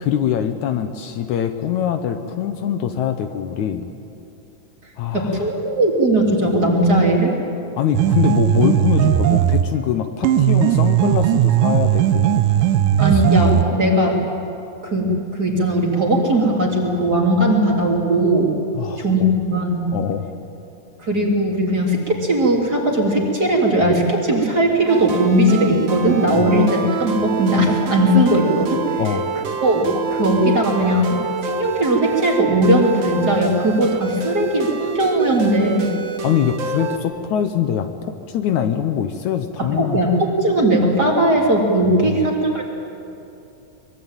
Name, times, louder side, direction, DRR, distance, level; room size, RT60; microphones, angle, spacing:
voice 1, 0.0-3.9 5.0-5.4 7.8-12.3 13.1-13.2 13.7-13.9 18.8-19.3 19.9-20.4 26.4-26.5 29.0-29.3 36.2-40.0 42.0-42.3, left 9 dB, 70° left, 8 dB, 2.1 m, -23 dB
voice 2, 5.1-7.3 13.0-14.2 14.8-18.6 19.0-19.9 21.0-28.8 29.6-35.9 39.6-42.6, right 1 dB, 30° right, -1 dB, 3.6 m, -18 dB
sound 1, 7.9-9.8 10.2-13.8, right 11 dB, 85° right, 2.5 m, -17 dB
sound 2, 24.9-37.0, right 4 dB, 50° right, 1.5 m, -27 dB
24.0 x 22.5 x 9.0 m, 2.7 s
omnidirectional pair, 3.8 m